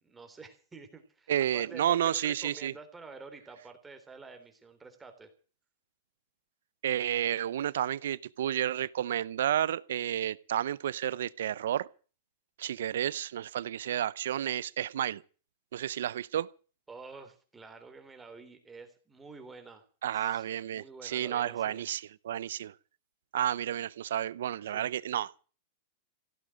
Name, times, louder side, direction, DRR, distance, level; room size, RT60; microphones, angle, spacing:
voice 1, 0.0-5.3 16.9-19.8 20.1-21.9 24.7-24.9, right 4 dB, 10° right, 3.5 m, -49 dB
voice 2, 1.3-2.7 6.8-11.9 12.6-15.2 15.7-16.5 20.0-22.7 23.3-25.4, right 11 dB, 80° right, 0.6 m, -31 dB
16.0 x 8.4 x 9.0 m
hypercardioid pair, 130°, 0 cm